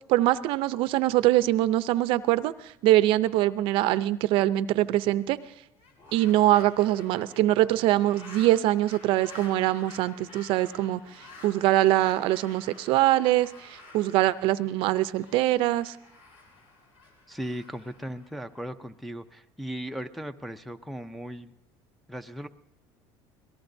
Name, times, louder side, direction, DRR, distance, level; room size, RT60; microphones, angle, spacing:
voice 1, 0.1-5.4 6.1-11.0 11.4-16.0, right 15 dB, 65° right, 14 dB, 0.5 m, -23 dB
sound 1, 5.7-18.9, left 3 dB, 60° left, 5.2 m, -51 dB
voice 2, 17.3-21.5 22.1-22.5, equal, ahead, 4 dB, 0.5 m, -37 dB
25.5 x 18.5 x 2.7 m, 0.84 s
cardioid pair, 145°, 10 cm